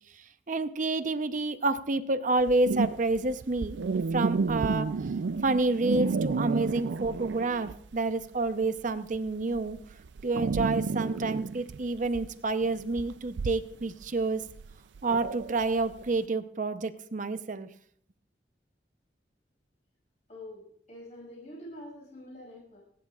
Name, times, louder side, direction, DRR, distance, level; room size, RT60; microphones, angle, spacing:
voice 1, 0.5-3.8 4.1-4.9 5.4-9.8 10.2-14.4 15.0-17.7, right 3 dB, 45° right, 11 dB, 0.8 m, -29 dB
sound 1, 2.4-8.0 8.3-16.1, right 4 dB, 85° right, 0.4 m, -31 dB
voice 2, 20.3-22.8, left 1 dB, 40° left, -3 dB, 6.1 m, -46 dB
29.5 x 11.0 x 2.4 m, 0.64 s
head